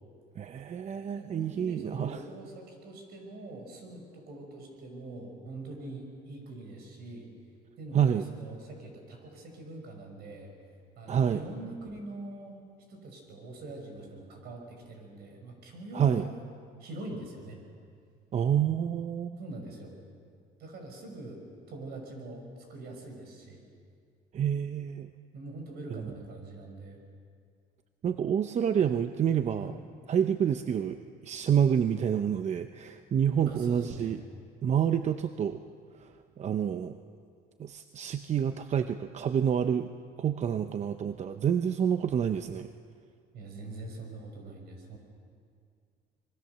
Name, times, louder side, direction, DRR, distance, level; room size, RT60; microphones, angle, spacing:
voice 1, 0.4-2.2 7.9-8.2 11.1-11.4 15.9-16.2 18.3-19.4 24.3-25.1 28.0-29.7 30.1-34.2 34.6-35.6 36.0-36.1 36.4-37.0 37.6-39.9 40.2-42.7, right 8 dB, 40° right, 9 dB, 0.7 m, -28 dB
voice 2, 1.1-7.3 7.8-10.5 11.0-12.6 12.9-16.3 16.8-17.6 19.4-19.9 20.6-21.4 21.7-23.6 25.3-27.0 29.6-29.7 33.5-34.1 43.3-45.0, right 2 dB, 70° right, 3 dB, 5.8 m, -43 dB
25.0 x 22.5 x 6.8 m, 2.2 s
cardioid pair, 110°, 17 cm